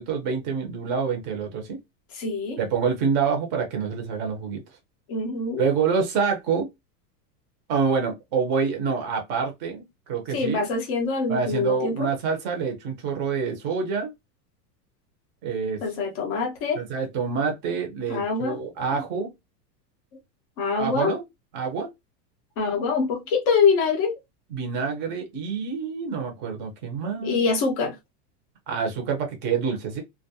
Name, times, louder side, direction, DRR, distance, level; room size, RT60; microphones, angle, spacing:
voice 1, 0.0-1.8 2.6-4.6 5.6-6.7 7.7-10.6 11.3-14.1 15.4-15.8 16.7-19.3 20.8-21.2 21.5-21.9 24.5-27.4 28.7-30.0, right 5 dB, 25° right, 0.6 m, -27 dB
voice 2, 2.1-2.6 5.1-5.6 10.3-12.1 15.8-16.8 18.1-18.6 18.9-19.0 20.6-21.1 22.6-24.1 27.2-27.9, left 4 dB, 25° left, 0.4 m, -24 dB
2.3 x 2.2 x 2.7 m
supercardioid pair, 155°, 48 cm